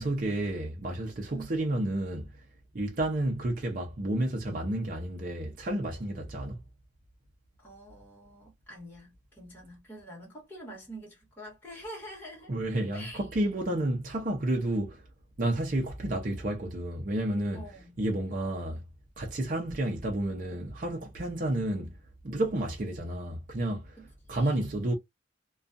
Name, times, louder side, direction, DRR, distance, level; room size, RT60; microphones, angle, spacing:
voice 1, 0.0-2.3 2.7-6.6 12.5-15.0 15.4-17.7 18.0-18.8 19.2-21.9 22.2-24.0 24.3-24.9, right 1 dB, 45° right, 0.6 m, -31 dB
voice 2, 7.6-12.5 12.9-13.2 17.5-17.9 24.0-24.7, right 1 dB, 10° left, 1.3 m, -46 dB
2.4 x 2.3 x 2.5 m
head